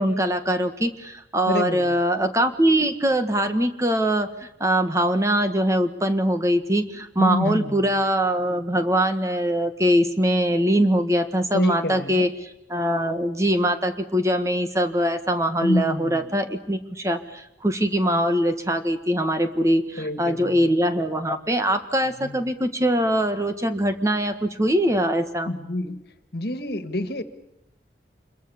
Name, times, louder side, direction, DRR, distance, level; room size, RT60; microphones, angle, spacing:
voice 1, 0.0-12.3 12.7-25.5, equal, 15° right, 8 dB, 1.6 m, -22 dB
voice 2, 1.5-2.0 7.2-7.9 11.5-12.2 15.6-16.3 20.0-20.7 22.2-22.4 25.5-26.0 26.3-27.2, left 1 dB, 60° left, 11 dB, 1.9 m, -27 dB
27.0 x 22.5 x 7.1 m, 0.86 s
head